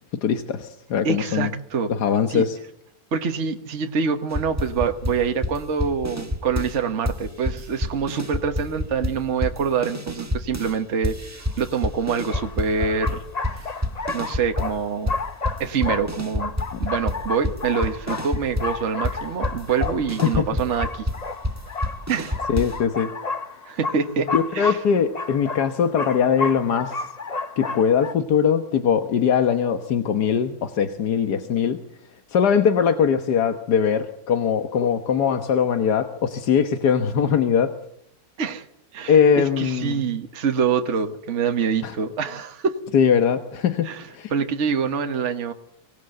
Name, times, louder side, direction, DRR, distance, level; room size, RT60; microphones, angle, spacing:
voice 1, 0.2-1.5 1.9-2.6 20.2-20.4 22.5-23.1 24.3-27.1 27.6-31.8 32.3-37.7 39.1-40.0 41.8-41.9 42.9-43.9 44.1-44.3, left 7 dB, 90° left, 8 dB, 1.8 m, -21 dB
voice 2, 1.0-1.9 2.3-2.5 3.1-13.2 13.5-13.7 14.1-15.1 15.6-16.5 16.8-21.1 22.1-22.4 23.6-24.8 38.4-38.6 38.9-42.8 43.8-45.5, right 6 dB, 50° right, 6 dB, 1.5 m, -25 dB
sound 1, 4.3-6.8 7.0-10.7 11.0-14.8 15.1-22.8, left 1 dB, 10° right, 1.3 m, -28 dB
sound 2, 11.5-11.6 12.3-28.1, left 4 dB, 30° left, 1.0 m, -32 dB
24.0 x 18.0 x 7.8 m, 0.74 s
omnidirectional pair, 1.7 m